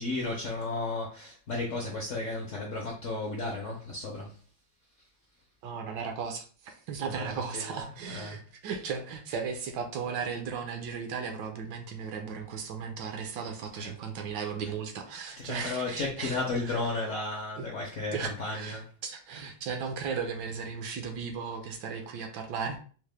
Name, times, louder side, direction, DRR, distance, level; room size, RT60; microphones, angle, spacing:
voice 1, 0.0-4.3 7.1-8.4 13.8-13.9 15.4-18.9, left 2 dB, 65° left, -1 dB, 0.7 m, -34 dB
voice 2, 5.6-16.8 17.6-17.7 18.1-22.8, right 6 dB, 75° right, 5 dB, 1.2 m, -36 dB
4.5 x 2.1 x 3.2 m, 0.41 s
omnidirectional pair, 2.1 m